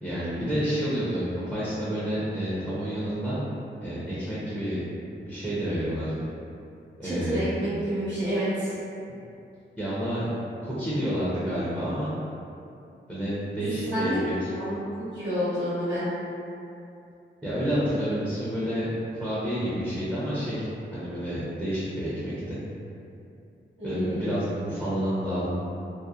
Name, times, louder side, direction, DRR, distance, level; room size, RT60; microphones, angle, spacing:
voice 1, 0.0-3.4 3.8-4.8 5.2-6.2 7.0-7.5 9.8-10.3 10.6-12.1 13.1-14.5 17.4-22.6 23.8-25.5, equal, 5° right, -11 dB, 0.6 m, -29 dB
voice 2, 7.0-8.7 13.6-14.2 14.5-14.8 15.1-16.1 23.8-24.5, equal, 75° right, -13 dB, 1.0 m, -29 dB
2.7 x 2.0 x 2.3 m, 2.6 s
wide cardioid pair, 85°, 20 cm